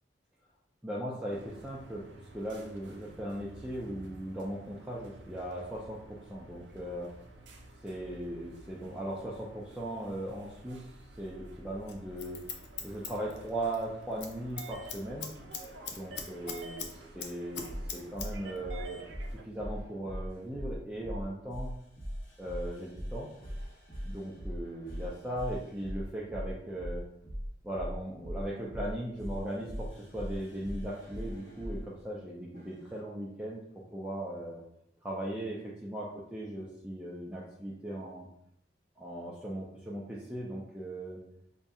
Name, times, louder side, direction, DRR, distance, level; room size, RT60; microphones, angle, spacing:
voice 1, 0.8-2.0 2.3-7.1 7.8-10.9 11.2-12.4 12.8-15.3 15.9-19.1 19.4-21.7 22.4-23.3 24.0-27.0 27.6-33.6 33.9-34.6 35.0-38.3 39.0-41.2, right 1 dB, 5° right, -5 dB, 0.4 m, -38 dB
sound 1, 1.3-19.4, right 2 dB, 90° right, 0.5 m, -51 dB
Scissors, 11.9-13.8 14.1-14.3 14.6-16.9 17.2-18.3 18.6-18.7, left 6 dB, 75° left, 0.5 m, -40 dB
sound 2, 15.5-16.5 17.2-31.9 32.5-32.9, equal, 50° left, 1.3 m, -41 dB
5.3 x 2.6 x 2.3 m, 0.76 s
head